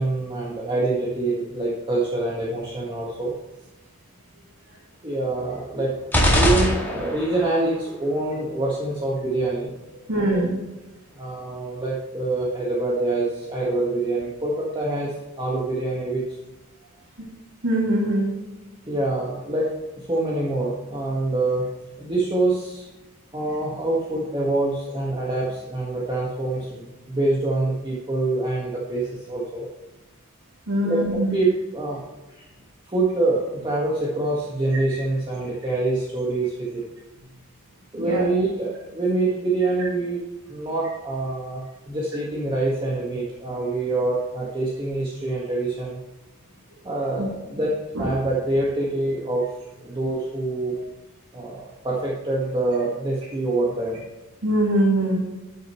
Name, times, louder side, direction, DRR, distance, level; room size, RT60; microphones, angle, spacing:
voice 1, 0.0-3.3 5.0-6.0 6.3-9.7 10.1-10.4 11.1-16.4 18.9-21.6 22.0-22.9 23.3-29.7 30.8-32.4 32.9-36.8 37.9-40.2 40.5-41.6 41.9-46.0 46.8-49.5 49.8-50.7 51.3-54.0, right 2 dB, 25° right, -5 dB, 1.7 m, -25 dB
sound 1, 6.1-7.4, equal, 10° left, 2.1 m, -20 dB
voice 2, 10.1-10.6 17.6-18.3 30.7-31.4 37.9-38.2 47.2-47.3 48.0-48.1 50.7-50.8 54.4-55.2, right 1 dB, 80° right, -5 dB, 2.5 m, -22 dB
12.5 x 6.6 x 3.1 m, 1.1 s
head